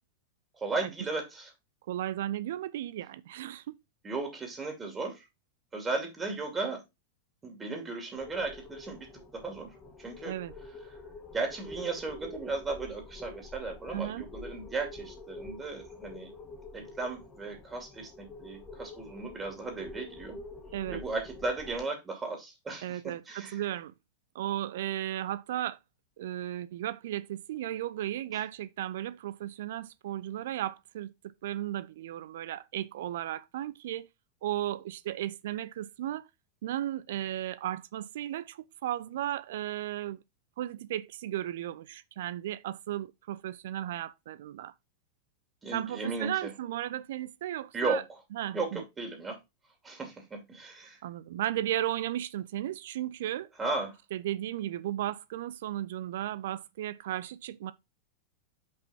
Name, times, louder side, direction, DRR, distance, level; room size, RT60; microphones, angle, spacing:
voice 1, 0.5-1.5 4.0-5.2 5.7-6.8 7.4-9.1 9.3-9.7 10.0-10.3 11.3-16.3 16.7-20.4 20.9-23.0 23.3-23.6 45.6-46.5 47.7-48.0 48.5-49.4 49.8-51.0 53.6-53.9, right 3 dB, 20° right, 2.6 m, -35 dB
voice 2, 1.9-3.8 10.2-10.5 13.9-14.3 20.7-21.0 22.8-23.9 24.3-25.8 26.2-34.1 34.4-36.3 36.6-40.2 40.6-44.7 45.7-48.0 48.3-48.8 51.0-53.5 54.1-57.7, right 13 dB, 55° right, 0.5 m, -35 dB
sound 1, 8.2-21.8, left 2 dB, 20° left, 1.9 m, -47 dB
5.9 x 5.1 x 4.2 m
figure-of-eight pair, 90°, 0 cm